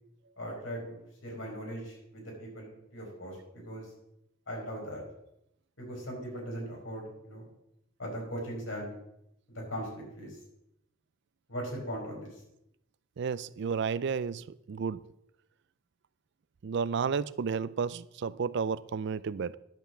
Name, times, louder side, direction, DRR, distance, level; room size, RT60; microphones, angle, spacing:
voice 1, 0.4-3.9 4.5-5.0 5.8-7.5 8.0-8.9 9.5-10.4 11.5-12.4, equal, 85° left, -1 dB, 4.8 m, -39 dB
voice 2, 13.2-15.1 16.6-19.6, right 6 dB, 60° right, 18 dB, 0.4 m, -32 dB
10.5 x 5.7 x 7.6 m, 0.81 s
head